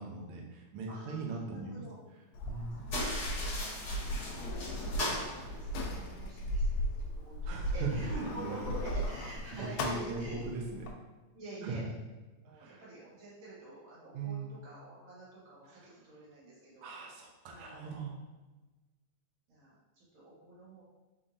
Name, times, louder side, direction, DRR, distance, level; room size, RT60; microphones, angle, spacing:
voice 1, 0.0-1.8 2.5-2.8 7.5-8.7 9.5-10.9 11.6-11.9 12.4-12.8 14.1-14.5 16.8-18.2, right 3 dB, 85° right, -1 dB, 1.2 m, -39 dB
voice 2, 0.9-2.0 2.8-3.7 4.2-8.1 8.3-10.4 11.3-11.9 12.4-16.9 17.4-17.9 19.5-20.8, right 2 dB, 50° right, -8 dB, 2.1 m, -49 dB
Sliding door, 2.3-10.9, equal, 80° left, 1.7 m, -37 dB
sound 1, 2.9-6.3, equal, 50° left, 1.3 m, -38 dB
4.5 x 3.8 x 2.7 m, 1.2 s
omnidirectional pair, 3.5 m